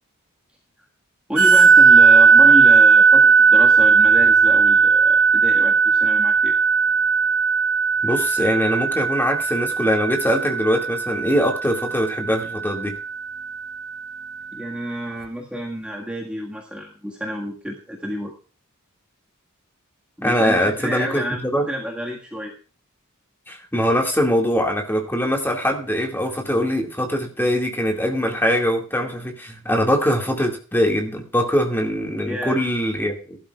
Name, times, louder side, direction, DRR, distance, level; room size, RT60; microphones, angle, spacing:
voice 1, 1.3-6.6 14.5-18.3 20.2-21.4 21.7-22.5 32.3-32.6, equal, 5° right, -2 dB, 1.7 m, -29 dB
sound 1, 1.4-13.6, right 5 dB, 85° right, 1.1 m, -16 dB
voice 2, 8.0-13.0 20.2-21.6 23.5-33.4, equal, 10° left, 1 dB, 2.2 m, -22 dB
20.5 x 12.0 x 2.4 m, 0.37 s
head